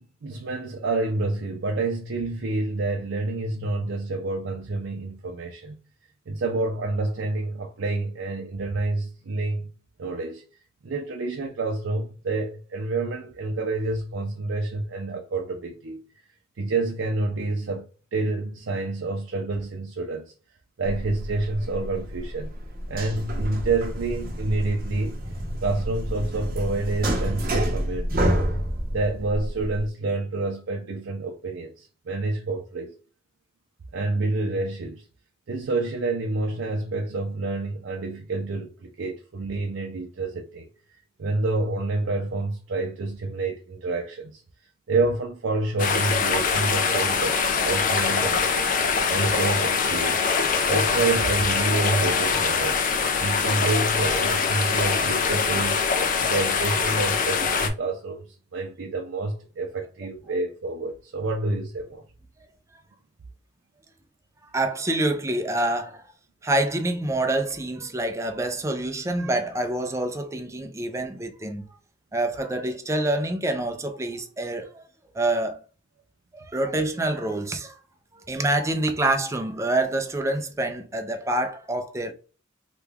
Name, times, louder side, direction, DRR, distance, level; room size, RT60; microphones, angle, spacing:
voice 1, 0.0-5.8 6.3-9.7 10.0-10.4 10.8-16.0 16.6-20.3 20.8-22.5 22.9-25.2 25.6-28.3 28.9-32.9 33.9-35.1 35.5-44.4 44.9-47.4 47.7-50.3 50.7-52.8 53.2-55.8 56.2-62.0, right 3 dB, 75° right, 0.5 m, -28 dB
sound 1, 20.8-29.9, equal, 50° right, 0.8 m, -29 dB
sound 2, 45.8-57.7, left 5 dB, 45° left, 0.4 m, -23 dB
voice 2, 64.5-66.0 66.4-71.7 72.1-74.8 75.1-75.6 76.3-77.7 78.3-82.1, right 1 dB, 15° right, 0.4 m, -26 dB
3.0 x 2.3 x 3.4 m
head